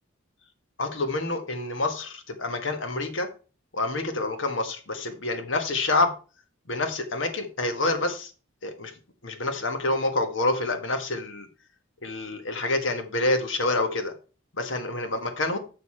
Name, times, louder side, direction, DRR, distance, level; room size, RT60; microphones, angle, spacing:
voice 1, 0.8-3.3 3.7-6.1 6.7-8.3 8.6-8.9 9.2-11.5 12.0-14.1 14.5-15.6, left 2 dB, 65° left, 1.4 m, -27 dB
6.8 x 6.5 x 4.4 m
head